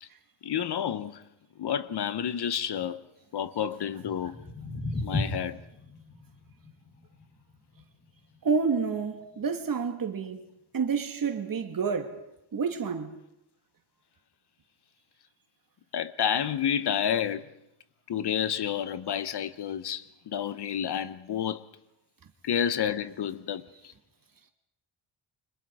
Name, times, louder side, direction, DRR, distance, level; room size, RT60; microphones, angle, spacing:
voice 1, 0.4-1.2 1.6-3.0 3.3-4.4 5.0-5.6 15.9-17.5 18.1-21.7 22.4-23.9, left 9 dB, 50° left, 1.0 m, -30 dB
sound 1, 4.0-10.1, left 2 dB, 20° left, 3.2 m, -37 dB
voice 2, 8.4-10.5 10.7-12.2 12.5-13.1, right 5 dB, 40° right, 2.5 m, -29 dB
29.5 x 26.0 x 4.9 m
wide cardioid pair, 170°, 50 cm